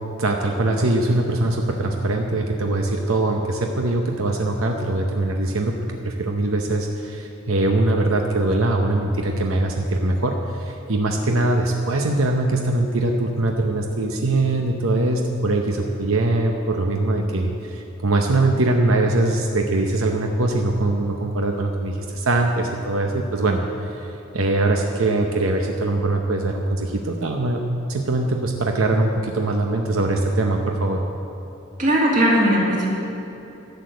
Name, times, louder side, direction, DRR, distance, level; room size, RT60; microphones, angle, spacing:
voice 1, 0.2-31.0, right 2 dB, 80° right, 2 dB, 0.8 m, -22 dB
voice 2, 31.8-32.9, equal, 40° right, -3 dB, 2.2 m, -18 dB
11.5 x 6.7 x 7.9 m, 3.0 s
head